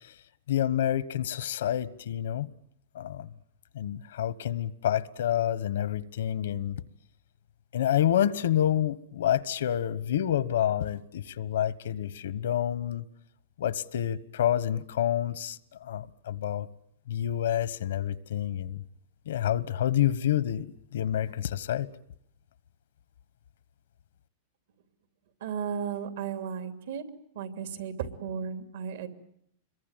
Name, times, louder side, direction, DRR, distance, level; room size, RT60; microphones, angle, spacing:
voice 1, 0.5-2.5 2.9-3.3 3.7-6.8 7.7-13.0 13.6-16.7 17.1-18.8 19.3-20.7 20.9-21.9, left 11 dB, 85° left, 1.3 m, -28 dB
voice 2, 25.4-27.0 27.3-29.1, right 7 dB, 75° right, 2.9 m, -34 dB
26.5 x 22.5 x 9.1 m
supercardioid pair, 155°, 0 cm